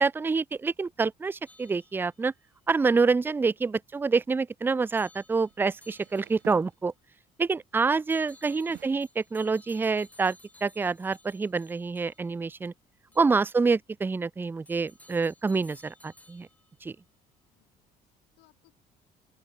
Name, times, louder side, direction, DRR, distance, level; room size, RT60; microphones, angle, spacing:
voice 1, 0.0-2.3 2.7-6.9 7.4-10.4 10.6-12.7 13.2-16.5 16.8-16.9, right 4 dB, 10° right, 0.4 m, -27 dB
sound 1, 1.5-2.4 5.0-6.7 8.1-12.4 13.1-13.3 14.7-16.8, left 1 dB, 10° left, 2.1 m, -57 dB
sound 2, 2.8-2.9 5.3-7.2 8.3-8.9, right 19 dB, 85° right, 2.3 m, -53 dB
voice 2, 8.1-8.5 13.1-13.3 17.5-18.8, left 20 dB, 90° left, 5.1 m, -68 dB
open air
cardioid pair, 110°, 17 cm